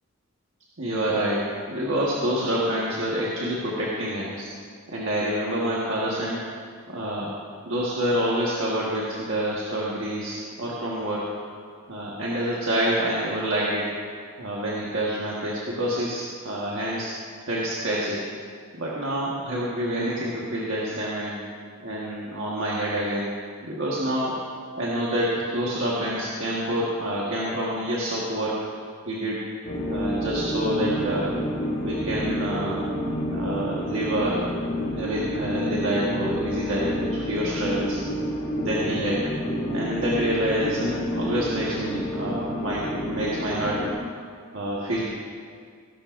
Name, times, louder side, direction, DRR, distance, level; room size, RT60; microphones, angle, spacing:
voice 1, 0.8-4.5 4.9-6.4 6.9-7.3 7.6-11.3 11.9-13.9 14.4-17.1 17.4-18.2 18.7-21.4 21.8-23.3 23.6-24.4 24.8-28.6 29.1-29.4 29.9-31.3 31.8-32.8 33.2-34.5 34.9-38.0 38.5-39.2 39.7-43.8 44.5-45.0, equal, 65° right, -6 dB, 1.5 m, -27 dB
sound 1, 29.6-44.0, equal, 65° left, 3.4 m, -29 dB
17.5 x 12.0 x 2.6 m, 2.1 s
head